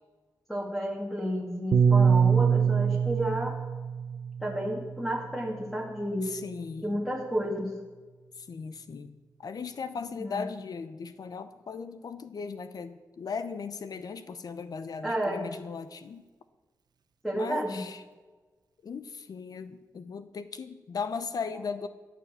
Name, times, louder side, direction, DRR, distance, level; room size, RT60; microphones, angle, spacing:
voice 1, 0.5-3.6 4.4-6.3 6.8-7.7 10.2-10.5 15.0-15.5 17.2-17.8, right 1 dB, ahead, -1 dB, 1.8 m, -31 dB
Piano, 1.7-6.2, right 6 dB, 90° right, 0.8 m, -25 dB
voice 2, 6.2-7.0 8.4-9.2 9.4-16.2 17.3-18.0 18.8-21.9, left 5 dB, 65° left, 11 dB, 0.7 m, -37 dB
13.5 x 8.3 x 7.6 m, 1.3 s
wide cardioid pair, 95°, 7 cm